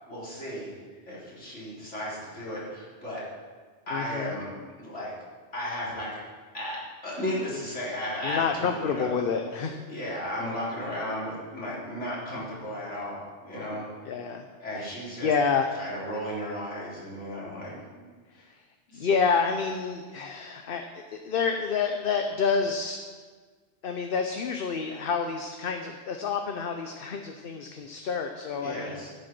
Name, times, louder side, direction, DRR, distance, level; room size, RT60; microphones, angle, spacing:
voice 1, 0.1-0.7 1.1-3.2 3.9-4.5 4.8-5.1 5.5-6.2 6.5-9.1 9.9-13.8 14.6-15.3 15.8-18.1 18.9-19.1 28.6-29.1, equal, 85° left, -7 dB, 4.1 m, -34 dB
voice 2, 3.9-4.3 8.2-9.7 14.1-14.5 14.8-14.9 15.2-15.7 18.9-23.0 23.8-29.0, left 5 dB, 55° left, 5 dB, 0.9 m, -28 dB
12.5 x 7.8 x 6.1 m, 1.5 s
omnidirectional pair, 1.2 m